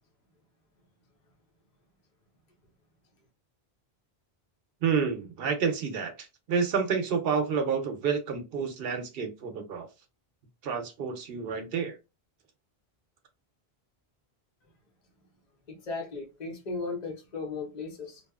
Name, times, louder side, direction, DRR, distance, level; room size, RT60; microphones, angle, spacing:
voice 1, 4.8-9.9 10.6-12.0, right 6 dB, 70° right, 0.8 m, -29 dB
voice 2, 15.7-18.2, left 4 dB, 45° left, 0.9 m, -36 dB
2.7 x 2.3 x 2.3 m
omnidirectional pair, 1.1 m